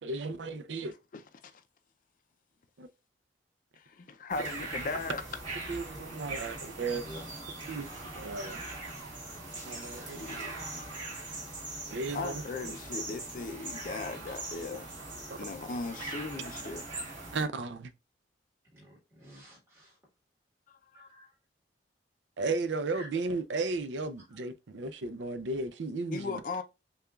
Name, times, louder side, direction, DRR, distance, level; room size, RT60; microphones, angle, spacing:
voice 1, 0.0-0.9 2.8-2.9 5.7-7.0 7.7-7.9 8.1-8.6 9.6-10.2 11.9-12.4 15.3-15.4 17.3-17.9 22.4-26.4, right 3 dB, 70° right, 0.5 m, -34 dB
voice 2, 3.8-5.2 10.2-10.8 12.1-14.9 15.4-16.8 20.7-20.8 26.1-26.6, left 3 dB, 45° left, 0.4 m, -38 dB
sound 1, 4.3-17.4, right 2 dB, 40° right, 1.7 m, -41 dB
voice 3, 6.9-7.3 9.9-11.0 12.2-12.3 12.7-12.8 14.1-15.0 18.7-20.0 20.9-21.3 22.9-23.1, equal, 15° right, 1.4 m, -52 dB
6.6 x 2.3 x 2.3 m
head